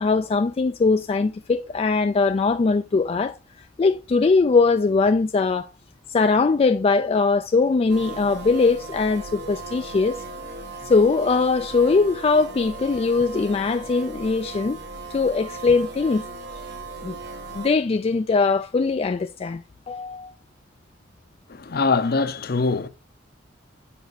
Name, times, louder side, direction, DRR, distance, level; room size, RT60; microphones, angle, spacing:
voice 1, 0.0-3.4 3.8-5.7 6.1-10.2 10.8-14.8 15.1-16.3 17.0-17.2 17.5-19.6 19.9-20.3, left 4 dB, 30° left, 0.3 m, -21 dB
sound 1, 7.9-17.7, right 3 dB, 60° right, 1.1 m, -37 dB
voice 2, 21.5-22.9, left 4 dB, 55° left, 0.7 m, -23 dB
7.2 x 5.1 x 4.1 m
head